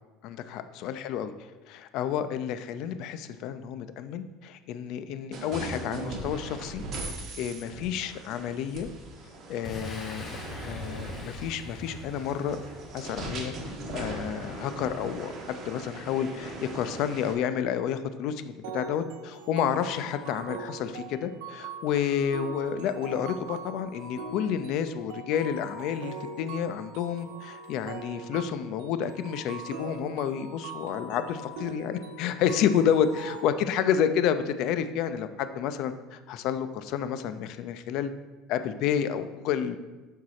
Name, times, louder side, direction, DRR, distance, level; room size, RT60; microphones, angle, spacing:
voice 1, 0.2-1.3 1.7-7.1 7.4-8.9 9.5-10.4 10.6-12.6 12.9-38.1 38.5-39.8, left 8 dB, 55° left, 11 dB, 0.6 m, -30 dB
sound 1, 5.3-17.3, right 2 dB, 40° right, 1.9 m, -40 dB
Boom, 9.6-13.3, left 1 dB, 25° left, 1.7 m, -41 dB
sound 2, 18.6-33.4, right 4 dB, 85° right, 1.4 m, -42 dB
12.5 x 4.7 x 4.2 m, 1.2 s
cardioid pair, 140°, 0 cm